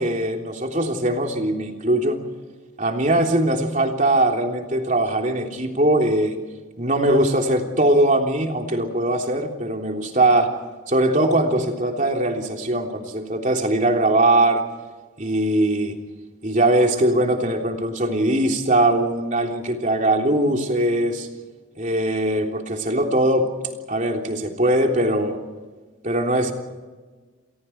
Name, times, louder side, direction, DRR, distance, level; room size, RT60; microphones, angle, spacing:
voice 1, 0.0-2.2 2.8-6.4 6.8-10.5 10.9-14.6 15.2-16.0 16.4-21.3 21.7-23.5 23.9-25.4 26.0-26.5, right 1 dB, 35° right, 2 dB, 3.4 m, -21 dB
30.0 x 27.5 x 4.6 m, 1.3 s
head